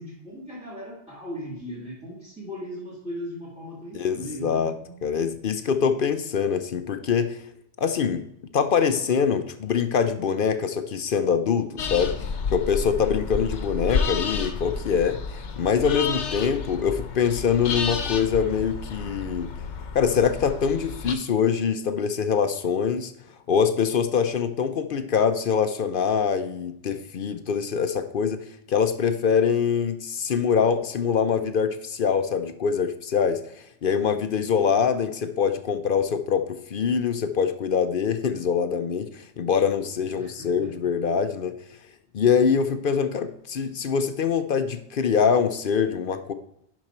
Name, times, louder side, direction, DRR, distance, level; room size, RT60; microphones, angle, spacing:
voice 1, 0.0-5.2 40.1-40.7, equal, 5° right, -3 dB, 2.0 m, -38 dB
voice 2, 3.9-4.8 5.0-7.4 7.8-8.2 8.5-19.5 19.9-23.1 23.5-41.5 42.1-46.3, left 6 dB, 55° left, 9 dB, 0.7 m, -24 dB
sound 1, 11.8-21.1, left 5 dB, 75° left, 1.2 m, -31 dB
11.0 x 5.4 x 4.3 m, 0.75 s
omnidirectional pair, 1.2 m